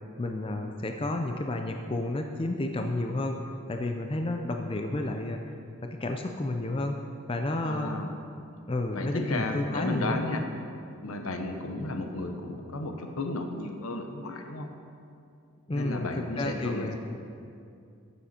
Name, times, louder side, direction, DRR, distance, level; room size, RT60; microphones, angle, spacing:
voice 1, 0.2-3.4 3.7-5.4 6.0-7.0 7.3-7.9 8.7-10.2 15.7-17.0, left 2 dB, 25° left, 4 dB, 0.5 m, -31 dB
voice 2, 7.6-8.1 8.9-10.4 11.0-14.7 15.7-17.0, left 2 dB, 80° left, 5 dB, 1.0 m, -33 dB
14.0 x 7.0 x 4.4 m, 2.5 s
head